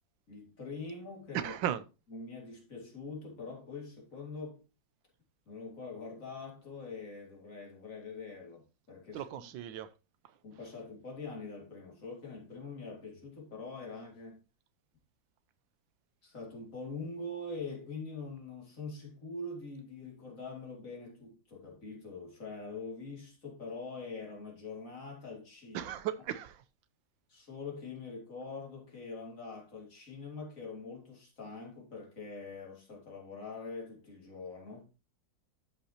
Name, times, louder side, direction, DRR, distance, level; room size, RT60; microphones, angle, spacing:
voice 1, 0.3-1.5 2.1-4.6 5.5-9.3 10.4-14.4 16.2-25.9 27.3-34.9, left 3 dB, 45° left, 2.8 m, -44 dB
voice 2, 1.3-1.8 9.1-9.9 25.7-26.6, right 10 dB, 90° right, 1.4 m, -36 dB
12.5 x 5.6 x 2.8 m
omnidirectional pair, 2.0 m